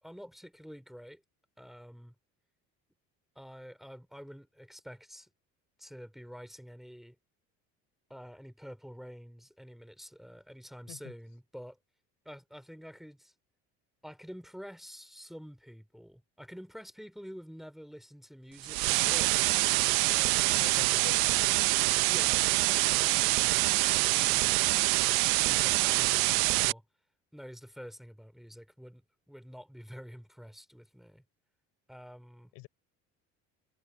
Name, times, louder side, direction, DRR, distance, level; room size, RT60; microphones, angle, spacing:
voice 1, 0.0-1.2 1.6-2.1 3.3-5.3 5.8-7.2 8.1-11.8 12.2-13.3 14.0-19.4 20.0-20.7 22.1-24.8 25.2-26.8 27.3-31.2 31.9-32.5, equal, ahead, 3.0 m, -48 dB
sound 1, 18.6-26.7, right 24 dB, 90° right, 0.7 m, -25 dB
voice 2, 20.5-21.9 32.6-32.7, left 24 dB, 85° left, 5.4 m, -46 dB
cardioid pair, 115°, 31 cm